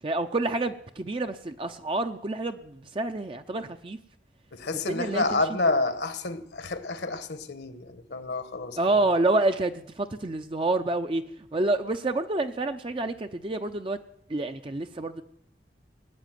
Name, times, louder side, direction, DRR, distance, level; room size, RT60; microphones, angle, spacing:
voice 1, 0.0-4.0 4.9-5.4 8.8-14.0 14.3-15.2, right 2 dB, 30° right, 0.6 m, -28 dB
voice 2, 4.5-9.1, left 2 dB, 70° left, 1.3 m, -29 dB
18.5 x 8.3 x 9.2 m
head